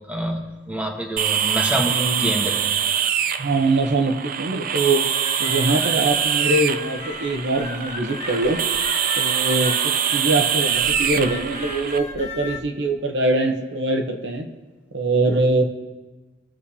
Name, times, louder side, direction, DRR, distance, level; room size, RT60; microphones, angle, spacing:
voice 1, 0.1-2.6, right 1 dB, 10° right, 1 dB, 1.1 m, -27 dB
sound 1, 1.2-12.0, right 8 dB, 50° right, 0.4 m, -24 dB
voice 2, 1.9-2.3 3.4-5.0 5.4-8.6 9.2-9.8 10.1-14.5 14.9-15.6, right 2 dB, 85° right, 5 dB, 0.9 m, -22 dB
sound 2, 5.1-12.6, left 4 dB, 40° left, 1.2 m, -35 dB
20.0 x 7.0 x 2.8 m, 1.2 s
head